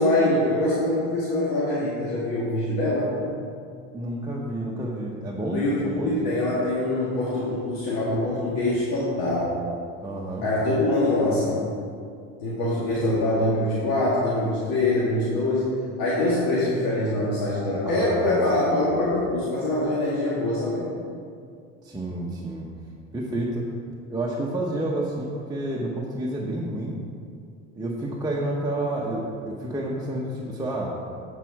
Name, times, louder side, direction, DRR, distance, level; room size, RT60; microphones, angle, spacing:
voice 1, 0.0-3.2 5.5-9.6 10.4-11.6 12.4-15.7 16.0-20.9, left 1 dB, 60° left, -8 dB, 2.0 m, -24 dB
voice 2, 3.9-6.1 10.0-10.5 17.8-18.8 21.8-22.7 23.1-23.6 24.1-27.0 27.7-30.9, right 1 dB, 10° right, -4 dB, 1.0 m, -29 dB
8.9 x 4.8 x 4.8 m, 2.3 s
supercardioid pair, 85°, 37 cm